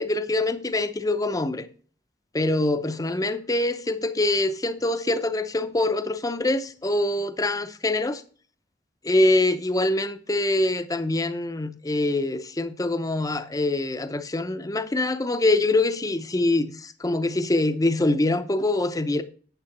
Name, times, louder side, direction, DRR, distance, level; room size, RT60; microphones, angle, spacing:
voice 1, 0.0-1.6 2.3-8.2 9.0-19.2, left 2 dB, 20° left, 0.7 m, -24 dB
9.1 x 7.5 x 4.2 m
head